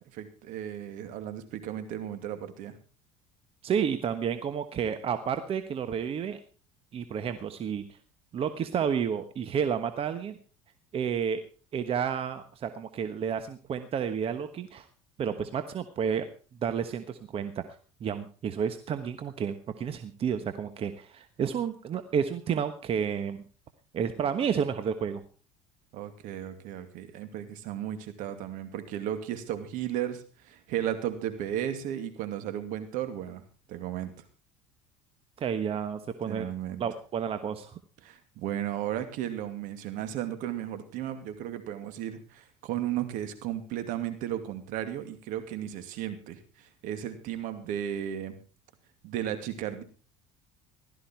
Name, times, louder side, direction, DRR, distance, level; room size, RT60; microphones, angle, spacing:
voice 1, 0.0-2.7 25.9-33.4 33.7-34.1 36.3-36.8 38.0-48.4 49.0-49.8, right 11 dB, 70° right, 9 dB, 2.6 m, -35 dB
voice 2, 3.6-6.4 6.9-7.8 8.3-10.4 10.9-11.4 11.7-14.9 15.2-16.2 16.6-17.6 18.0-23.4 23.9-25.2 35.4-36.5 36.8-37.8, right 7 dB, 40° right, 10 dB, 1.3 m, -31 dB
16.0 x 13.0 x 4.6 m, 0.36 s
supercardioid pair, 100°, 14 cm